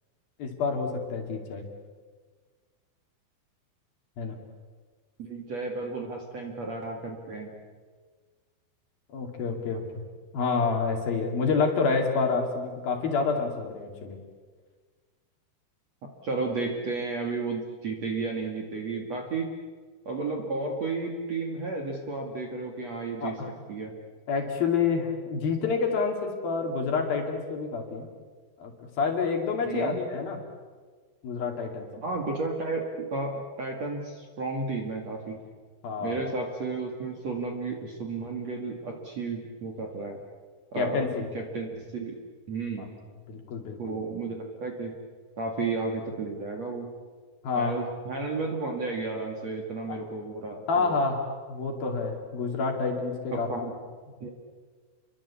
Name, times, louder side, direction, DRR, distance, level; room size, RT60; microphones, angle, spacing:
voice 1, 0.4-1.7 4.2-4.4 9.1-9.8 10.3-14.2 23.2-23.5 24.3-28.1 28.6-30.4 31.2-31.9 35.8-36.2 40.7-41.3 42.8-42.9 43.3-44.0 47.4-47.8 49.9-50.0 50.7-51.2 51.5-53.5, left 4 dB, 55° left, 3 dB, 4.0 m, -28 dB
voice 2, 5.2-7.6 16.2-19.5 20.1-23.3 23.7-23.9 29.6-30.0 31.9-35.4 36.0-40.2 40.7-42.1 42.5-42.9 43.8-44.9 45.4-46.9 47.5-51.0 53.3-53.7 54.2-54.3, right 3 dB, 45° right, 1 dB, 2.7 m, -33 dB
29.5 x 23.0 x 8.5 m, 1.5 s
omnidirectional pair, 5.7 m